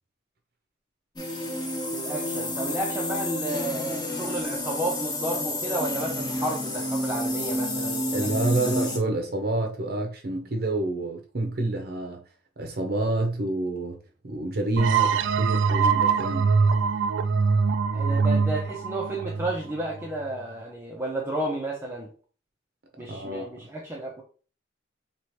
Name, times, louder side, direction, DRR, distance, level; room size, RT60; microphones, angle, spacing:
sound 1, 1.2-9.0, left 1 dB, 25° left, 1.1 m, -30 dB
voice 1, 1.9-8.7 17.9-22.1 23.0-24.2, right 1 dB, 15° right, 0.6 m, -32 dB
voice 2, 8.1-12.2 12.6-16.6 23.1-23.5, right 2 dB, 55° right, 0.7 m, -28 dB
sound 2, 14.8-20.2, right 5 dB, 75° right, 0.3 m, -23 dB
3.1 x 3.0 x 4.5 m
head